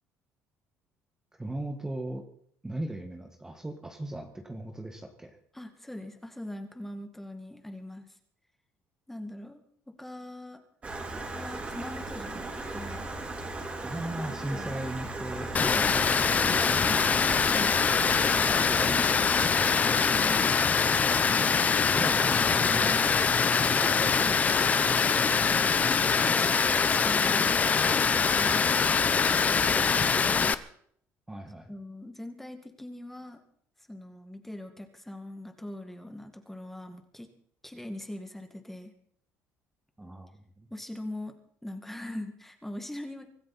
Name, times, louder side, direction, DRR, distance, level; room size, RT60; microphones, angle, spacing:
voice 1, 1.4-2.3 2.6-5.4 13.8-17.1 18.7-19.4 21.9-23.0 23.5-24.7 31.3-31.7 40.0-40.7, right 1 dB, 10° right, 4 dB, 1.8 m, -38 dB
voice 2, 5.5-8.1 9.1-10.6 11.3-12.4 12.7-13.1 14.5-14.8 15.4-15.9 17.4-17.8 19.9-20.8 25.7-27.6 27.9-30.5 31.7-33.4 33.9-37.3 37.6-38.9 40.7-43.3, left 1 dB, 5° left, 6 dB, 2.0 m, -41 dB
Stream, 10.8-18.6, right 2 dB, 25° right, 3.6 m, -37 dB
Water, 15.5-30.5, left 6 dB, 30° left, 0.8 m, -24 dB
24.5 x 13.5 x 4.3 m, 0.63 s
cardioid pair, 125°, 5 cm